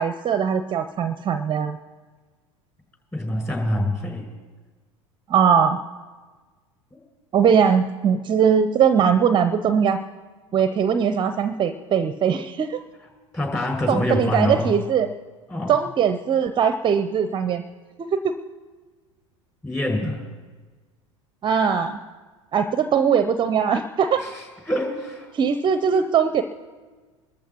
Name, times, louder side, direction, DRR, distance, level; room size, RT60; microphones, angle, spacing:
voice 1, 0.0-1.8 5.3-5.8 7.3-10.0 10.5-12.8 13.9-15.1 15.7-17.6 18.1-18.3 21.4-22.0 22.5-24.2 25.3-26.4, right 7 dB, 30° right, 10 dB, 0.5 m, -20 dB
voice 2, 3.1-4.3 13.3-14.7 15.5-15.7 19.6-20.2 24.2-25.3, left 1 dB, 15° left, 0 dB, 5.9 m, -25 dB
24.5 x 14.0 x 2.9 m, 1.4 s
hypercardioid pair, 80°, 17 cm